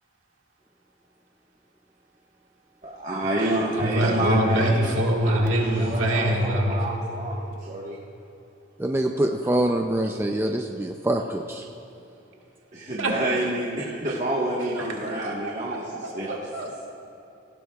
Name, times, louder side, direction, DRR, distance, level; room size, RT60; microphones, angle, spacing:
voice 1, 2.8-4.9 5.2-8.0 12.7-15.9 16.1-16.3, right 1 dB, 40° right, -6 dB, 1.4 m, -28 dB
voice 2, 3.8-6.9 13.0-13.2 14.8-15.1 15.4-16.8, right 1 dB, 85° right, 0 dB, 1.7 m, -24 dB
voice 3, 8.8-11.7, right 1 dB, 10° right, 3 dB, 0.4 m, -25 dB
18.0 x 15.5 x 2.4 m, 2.8 s
head